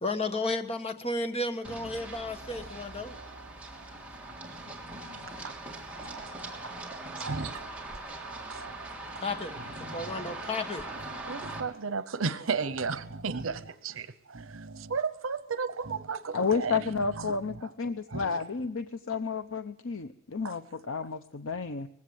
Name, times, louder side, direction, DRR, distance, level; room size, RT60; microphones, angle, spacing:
voice 1, 0.0-3.2 9.2-10.9, left 2 dB, 30° left, 8 dB, 1.5 m, -33 dB
Run, 1.6-11.6, right 2 dB, 5° right, 3.2 m, -41 dB
Growling, 1.6-3.6 5.9-7.7 8.0-8.9 9.5-10.4 10.8-11.8 12.1-12.2 12.4-13.8 14.2-15.0 15.7-16.2 16.5-17.7 18.1-18.4, right 2 dB, 70° right, 1.1 m, -44 dB
voice 2, 7.2-7.5 8.5-8.6 11.3-16.8 20.4-20.5, right 5 dB, 85° right, 14 dB, 0.8 m, -34 dB
voice 3, 16.3-21.9, left 5 dB, 85° left, 9 dB, 0.8 m, -31 dB
20.0 x 16.0 x 8.0 m, 0.77 s
head